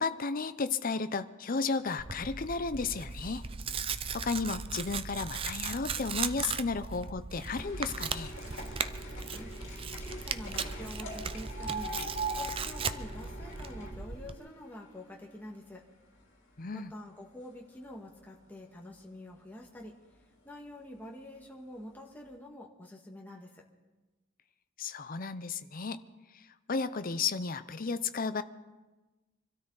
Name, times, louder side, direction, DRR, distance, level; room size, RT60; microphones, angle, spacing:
voice 1, 0.0-3.4 4.1-8.3 16.6-16.9 24.8-26.0 26.3-26.4 26.7-28.4, left 4 dB, 40° left, 11 dB, 0.6 m, -33 dB
Tearing, 2.0-14.3, right 5 dB, 25° right, 0.5 m, -38 dB
sound 1, 7.5-15.8 16.2-17.0 17.7-17.9 18.1-18.2 18.5-18.6 19.4-19.6 20.2-20.3 20.9-21.0 21.5-21.6, right 1 dB, 60° left, 3.4 m, -42 dB
voice 2, 9.3-15.8 16.7-19.9 20.4-23.6, left 1 dB, 10° left, -1 dB, 1.8 m, -47 dB
25.5 x 13.0 x 4.0 m, 1.2 s
head